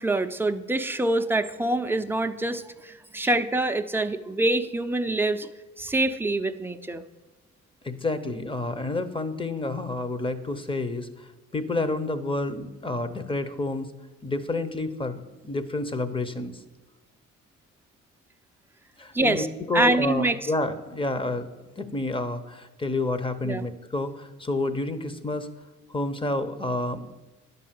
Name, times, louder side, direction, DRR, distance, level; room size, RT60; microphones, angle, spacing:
voice 1, 0.0-5.5 5.8-7.0 19.1-19.5 19.7-20.4 23.4-23.6, right 2 dB, 5° right, 7 dB, 0.6 m, -25 dB
voice 2, 7.8-11.1 11.5-13.9 14.2-16.6 19.0-21.5 21.8-25.5 25.9-27.0, left 2 dB, 15° left, 12 dB, 0.9 m, -29 dB
11.0 x 5.5 x 7.6 m, 1.2 s
cardioid pair, 90°, 30 cm